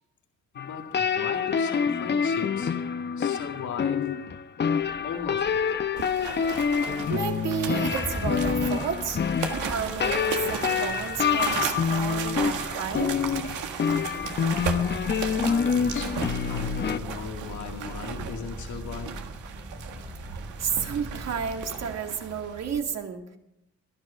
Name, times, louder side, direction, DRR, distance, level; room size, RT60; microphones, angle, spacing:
voice 1, 0.5-2.7 3.2-4.1 5.0-5.6 15.4-16.2 16.5-19.2, left 6 dB, 70° left, 2 dB, 2.1 m, -37 dB
sound 1, 0.6-17.0, left 6 dB, 35° left, 0.7 m, -27 dB
sound 2, 4.8-21.9, right 1 dB, 10° right, 2.6 m, -41 dB
sound 3, 6.0-22.8, right 7 dB, 85° right, 1.7 m, -36 dB
voice 2, 7.1-9.2 9.7-13.3 20.6-23.4, right 7 dB, 60° right, 4 dB, 2.2 m, -32 dB
18.5 x 11.0 x 5.0 m, 0.82 s
cardioid pair, 90°, 30 cm